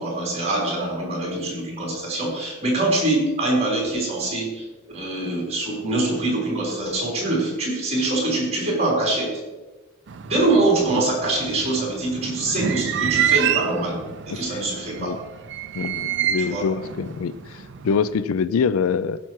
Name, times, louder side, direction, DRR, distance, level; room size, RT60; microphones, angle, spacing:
voice 1, 0.0-4.6 4.9-9.4 10.2-15.1 16.4-16.6, right 2 dB, 30° right, -3 dB, 3.7 m, -24 dB
sound 1, 10.1-18.2, right 9 dB, 55° right, 0.5 m, -28 dB
voice 2, 15.8-19.2, left 6 dB, 80° left, 17 dB, 0.4 m, -24 dB
15.5 x 5.9 x 4.6 m, 1.2 s
head